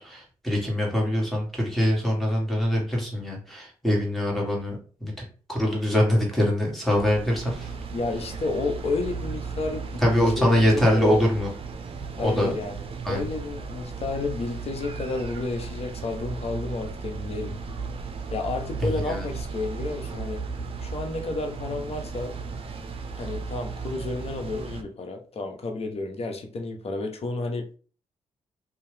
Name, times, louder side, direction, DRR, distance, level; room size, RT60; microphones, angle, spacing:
voice 1, 0.0-7.7 10.0-11.5 12.2-12.5 13.0-13.2 18.8-19.3, left 1 dB, ahead, -3 dB, 1.6 m, -24 dB
sound 1, 7.0-24.8, right 4 dB, 45° right, 0.5 m, -35 dB
voice 2, 7.9-10.0 10.4-11.2 12.1-17.6 18.3-20.4 20.8-22.3 23.1-27.8, left 3 dB, 50° left, 3 dB, 0.8 m, -31 dB
2.7 x 2.3 x 3.3 m, 0.40 s
supercardioid pair, 55°, 13 cm